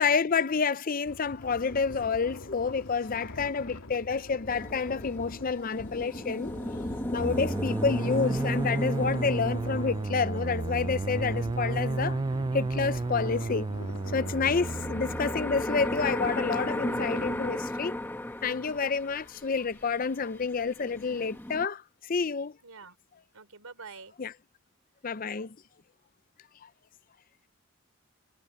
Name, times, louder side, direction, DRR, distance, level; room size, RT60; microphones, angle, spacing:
voice 1, 0.0-6.5 7.1-12.2 12.5-13.7 14.1-18.0 18.4-22.5 24.2-24.3 25.0-25.6, left 5 dB, 40° left, 0.5 m, -29 dB
sound 1, 1.1-17.5, left 1 dB, 85° left, 2.6 m, -44 dB
voice 2, 3.1-3.8 14.5-14.9 22.6-23.0 23.3-24.2, right 4 dB, 80° right, 3.8 m, -49 dB
sound 2, 4.5-13.4 13.8-21.6, left 1 dB, 10° left, 0.9 m, -36 dB
sound 3, 7.2-15.7, right 3 dB, 20° right, 0.3 m, -32 dB
head